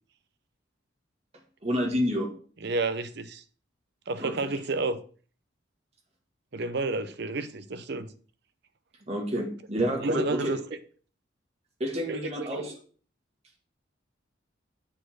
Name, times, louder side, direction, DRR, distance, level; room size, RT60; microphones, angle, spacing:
voice 1, 1.6-2.3 4.2-4.3 9.0-10.6 11.8-12.8, equal, 35° right, 1.9 m, -29 dB
voice 2, 2.6-3.4 4.1-5.0 6.5-8.1 10.0-10.6 12.1-12.5, right 3 dB, 55° right, 0.7 m, -30 dB
7.4 x 4.3 x 6.1 m
head